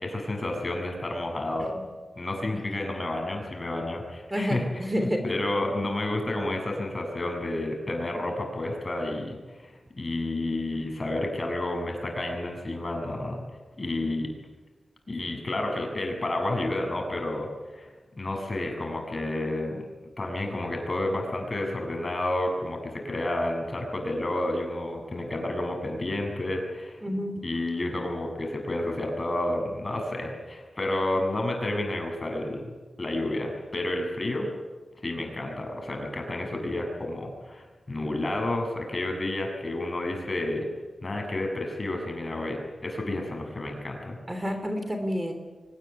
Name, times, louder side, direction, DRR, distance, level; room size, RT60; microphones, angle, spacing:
voice 1, 0.0-1.7 2.2-13.4 13.8-14.3 15.1-17.9 18.2-19.8 20.2-27.0 27.4-32.7 33.0-34.5 35.0-40.7 41.0-44.5, left 1 dB, 35° left, 3 dB, 7.2 m, -30 dB
voice 2, 4.3-5.2 27.0-27.5 44.3-45.3, equal, 20° right, 6 dB, 3.1 m, -29 dB
24.0 x 19.5 x 9.8 m, 1.3 s
wide cardioid pair, 85°, 0 cm